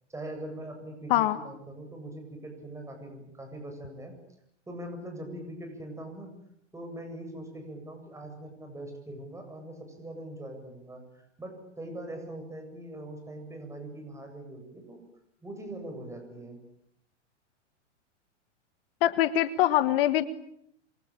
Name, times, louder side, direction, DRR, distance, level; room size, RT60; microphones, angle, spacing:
voice 1, 0.1-4.1 4.7-6.3 6.7-15.0 15.4-16.6, right 1 dB, 10° right, 4 dB, 8.0 m, -42 dB
voice 2, 19.0-20.3, left 13 dB, 50° left, 13 dB, 1.6 m, -23 dB
28.0 x 24.0 x 8.9 m, 0.74 s
hypercardioid pair, 115°, 36 cm